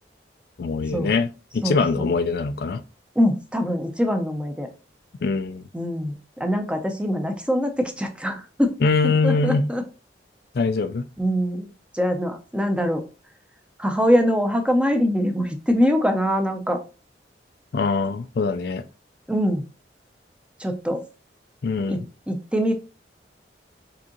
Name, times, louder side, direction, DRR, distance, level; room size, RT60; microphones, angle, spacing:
voice 1, 0.6-1.3 1.5-2.8 5.2-5.6 8.8-9.7 10.5-11.0 17.7-18.9 21.6-22.1, left 4 dB, 60° left, 0.4 m, -23 dB
voice 2, 1.6-2.1 3.2-4.7 5.7-8.7 9.0-9.8 11.2-11.7 11.9-13.0 13.8-16.8 19.3-19.6 20.6-21.0 21.9-22.7, equal, 5° right, 0.6 m, -23 dB
4.8 x 3.6 x 2.9 m
head